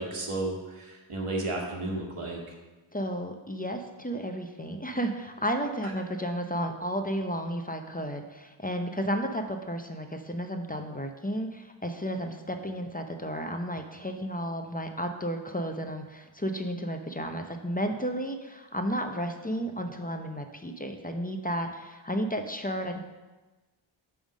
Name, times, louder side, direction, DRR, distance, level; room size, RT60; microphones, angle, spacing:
voice 1, 0.0-2.4, right 2 dB, 85° right, -1 dB, 1.5 m, -33 dB
voice 2, 2.9-23.0, equal, 15° left, 5 dB, 0.7 m, -33 dB
9.0 x 3.6 x 6.2 m, 1.2 s
wide cardioid pair, 45°, 50 cm